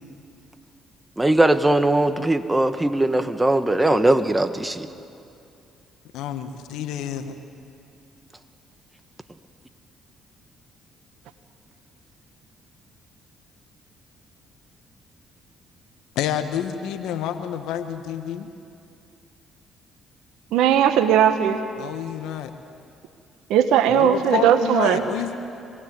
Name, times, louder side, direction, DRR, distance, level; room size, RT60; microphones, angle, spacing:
voice 1, 1.2-4.9, right 1 dB, 15° right, 9 dB, 1.6 m, -20 dB
voice 2, 6.1-7.3 16.1-18.5 21.8-22.5 23.9-25.4, left 10 dB, 75° left, 8 dB, 1.4 m, -28 dB
voice 3, 20.5-21.6 23.5-25.0, right 9 dB, 75° right, 7 dB, 1.3 m, -18 dB
26.5 x 19.0 x 9.6 m, 2.5 s
supercardioid pair, 60°, 0 cm